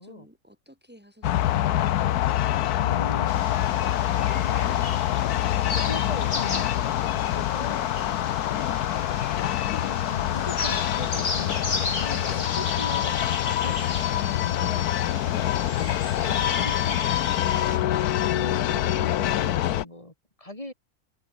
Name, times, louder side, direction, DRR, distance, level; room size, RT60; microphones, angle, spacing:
voice 1, 0.0-1.7 7.5-9.8 12.6-13.1 13.8-14.0 16.0-17.6, equal, 5° right, 6.7 m, -51 dB
sound 1, 1.2-19.8, left 12 dB, 85° left, 1.3 m, -25 dB
voice 2, 2.7-3.5 4.4-4.8 5.6-7.9 9.8-13.1 13.6-15.6 16.2-17.0 18.3-20.7, left 1 dB, 20° left, 4.9 m, -41 dB
sound 2, 3.3-17.8, left 3 dB, 55° left, 3.5 m, -35 dB
omnidirectional pair, 1.6 m